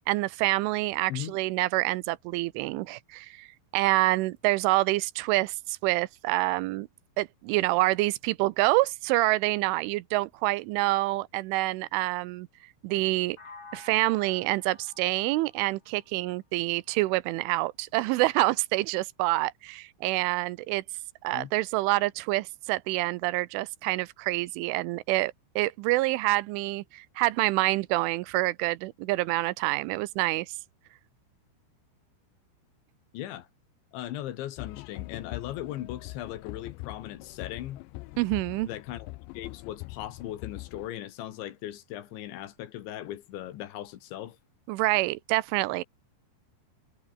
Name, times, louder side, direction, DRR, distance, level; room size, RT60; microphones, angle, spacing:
voice 1, 0.0-3.5 3.7-6.9 7.2-12.5 12.8-13.4 13.7-20.8 21.2-30.5 38.2-38.7 44.7-45.8, right 20 dB, 85° right, 3.2 m, -27 dB
sound 1, 13.4-17.3, left 4 dB, 30° left, 5.7 m, -52 dB
voice 2, 33.1-33.5 33.9-37.8 38.6-44.4, left 13 dB, 75° left, 3.9 m, -38 dB
sound 2, 34.6-40.9, left 23 dB, 90° left, 2.5 m, -42 dB
omnidirectional pair, 5.5 m